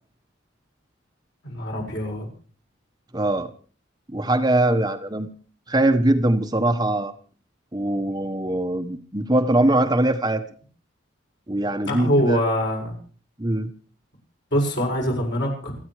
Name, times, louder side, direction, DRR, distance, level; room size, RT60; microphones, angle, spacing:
voice 1, 1.4-2.3 11.9-12.9 14.5-15.7, equal, 60° left, 0 dB, 7.3 m, -23 dB
voice 2, 3.1-3.5 4.1-5.3 5.7-7.1 7.7-10.4 11.5-12.4 13.4-13.7, right 1 dB, 20° right, 7 dB, 1.1 m, -22 dB
29.0 x 9.7 x 4.8 m, 0.41 s
head